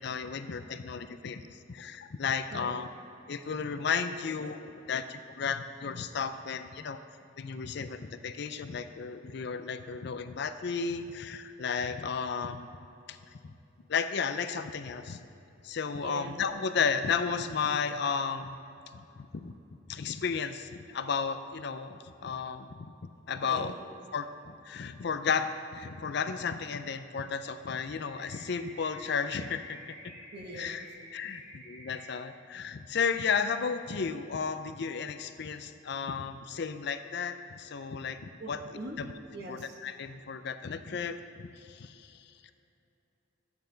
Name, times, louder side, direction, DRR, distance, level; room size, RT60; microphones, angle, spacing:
voice 1, 0.0-2.9 3.3-7.0 7.4-12.7 13.1-13.2 13.9-15.2 15.6-18.6 18.9-19.5 19.9-22.9 23.3-23.7 24.1-29.8 30.0-30.1 30.5-30.9 31.1-38.6 39.0-39.1 39.5-42.5, left 6 dB, 60° left, 10 dB, 0.5 m, -33 dB
voice 2, 16.0-16.3 23.4-23.9 30.3-30.9 38.4-39.0 39.3-39.8, right 2 dB, 55° right, 1 dB, 1.2 m, -42 dB
sound 1, 28.1-32.1, equal, 20° right, 2.1 m, -50 dB
12.5 x 8.8 x 3.9 m, 2.8 s
head